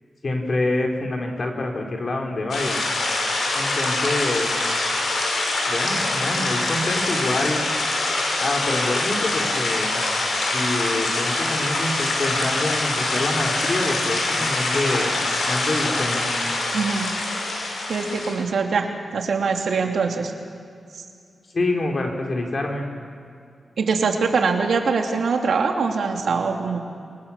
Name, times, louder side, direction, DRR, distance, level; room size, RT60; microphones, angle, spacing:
voice 1, 0.2-2.8 3.5-4.5 5.7-7.7 8.4-10.0 10.5-15.2 15.5-16.3 21.5-22.9, left 2 dB, 45° left, 2 dB, 4.4 m, -26 dB
sound 1, 2.5-18.3, left 2 dB, 85° left, 6.3 m, -24 dB
voice 2, 16.7-17.1 17.9-20.3 21.0-21.1 23.8-26.8, right 5 dB, 75° right, 3 dB, 2.8 m, -23 dB
28.5 x 24.0 x 7.4 m, 2.4 s
wide cardioid pair, 95°, 0 cm